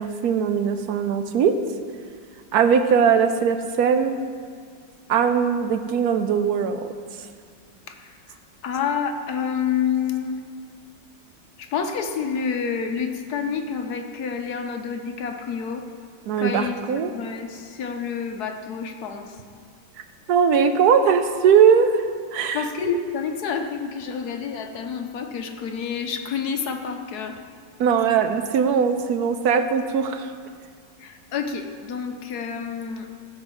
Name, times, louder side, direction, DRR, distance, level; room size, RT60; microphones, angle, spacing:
voice 1, 0.0-1.6 2.5-4.2 5.1-6.9 16.3-17.1 20.3-22.7 27.8-30.3, right 7 dB, 65° right, 8 dB, 1.1 m, -20 dB
voice 2, 7.9-10.4 11.6-15.9 16.4-19.4 22.5-27.4 31.0-33.1, left 6 dB, 65° left, 5 dB, 1.2 m, -28 dB
14.0 x 4.8 x 7.4 m, 2.1 s
omnidirectional pair, 1.9 m